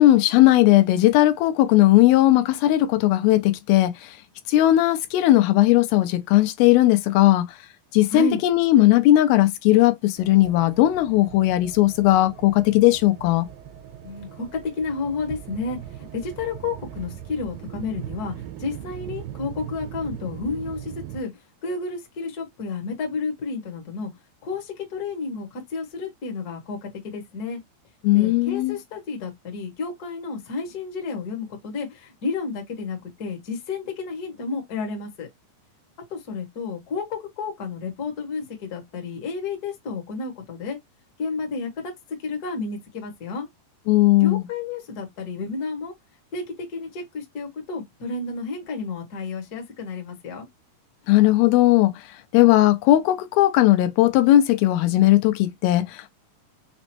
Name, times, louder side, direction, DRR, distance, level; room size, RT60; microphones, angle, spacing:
voice 1, 0.0-3.9 4.5-7.5 7.9-13.5 28.0-28.8 43.9-44.4 51.1-51.9 52.3-56.1, left 15 dB, 85° left, 2.5 m, -17 dB
sound 1, 10.2-21.2, right 11 dB, 75° right, 2.4 m, -39 dB
voice 2, 14.0-15.8 16.1-18.3 18.6-21.3 21.6-24.1 24.4-27.6 28.1-35.3 36.1-40.8 41.2-41.9 42.2-43.5 44.2-45.9 46.3-46.4 46.7-50.5, left 4 dB, 55° left, 1.0 m, -31 dB
6.1 x 2.0 x 2.8 m
omnidirectional pair, 4.3 m